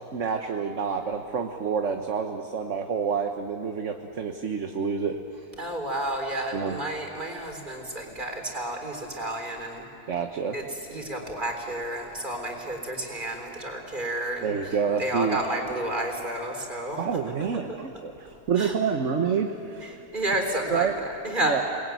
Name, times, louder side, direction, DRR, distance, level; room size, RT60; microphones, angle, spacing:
voice 1, 0.1-5.2 6.5-6.8 10.1-10.5 14.4-15.4 17.0-19.9 20.7-20.9 21.4-21.6, right 6 dB, 50° right, 5 dB, 1.4 m, -28 dB
voice 2, 5.6-9.8 10.5-17.0 17.4-17.8 18.6-18.8 19.8-21.6, right 1 dB, 30° right, 2 dB, 4.2 m, -31 dB
29.5 x 21.0 x 9.4 m, 2.8 s
omnidirectional pair, 1.7 m